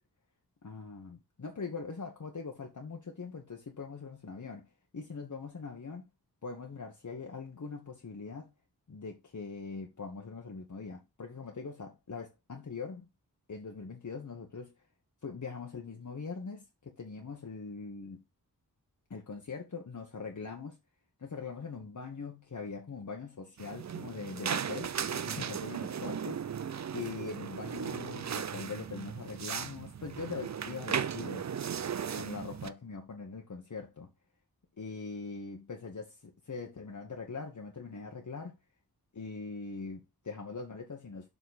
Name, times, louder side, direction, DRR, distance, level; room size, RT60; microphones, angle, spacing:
voice 1, 0.6-4.7 4.9-6.1 6.4-8.5 8.9-13.1 13.5-14.7 15.2-18.2 19.1-20.8 21.2-26.6 26.9-31.5 32.1-34.1 34.8-38.5 39.1-41.3, left 4 dB, 50° left, 1.2 m, -42 dB
sound 1, 23.6-32.7, right 7 dB, 50° right, 0.5 m, -36 dB
7.1 x 4.0 x 4.1 m
wide cardioid pair, 70°, 37 cm